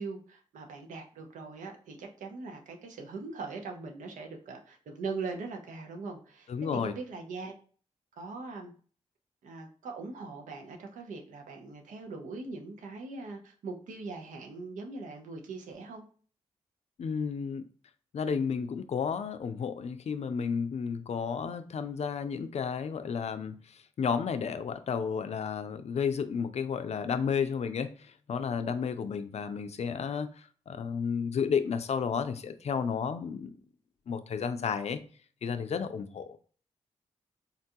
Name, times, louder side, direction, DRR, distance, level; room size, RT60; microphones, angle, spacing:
voice 1, 0.0-7.5 8.2-8.7 9.4-16.0, right 4 dB, 85° right, 3 dB, 0.6 m, -41 dB
voice 2, 6.5-6.9 17.0-17.6 18.1-30.3 30.7-33.6 34.1-35.0 35.4-36.4, left 6 dB, 60° left, 10 dB, 0.4 m, -32 dB
3.8 x 2.2 x 2.6 m, 0.43 s
supercardioid pair, 40°, 13 cm